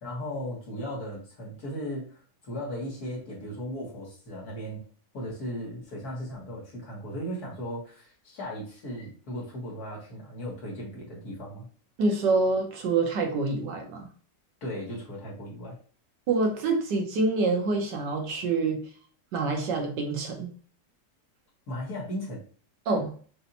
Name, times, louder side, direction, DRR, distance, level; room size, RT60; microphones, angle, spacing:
voice 1, 0.0-2.1 2.4-4.8 5.1-11.7 14.6-15.8 21.7-22.4, equal, 60° left, -4 dB, 2.0 m, -36 dB
voice 2, 12.0-14.1 16.3-18.8 19.3-20.5 22.9-23.1, right 3 dB, 80° right, 2 dB, 1.5 m, -26 dB
5.5 x 2.6 x 2.8 m, 0.42 s
omnidirectional pair, 1.9 m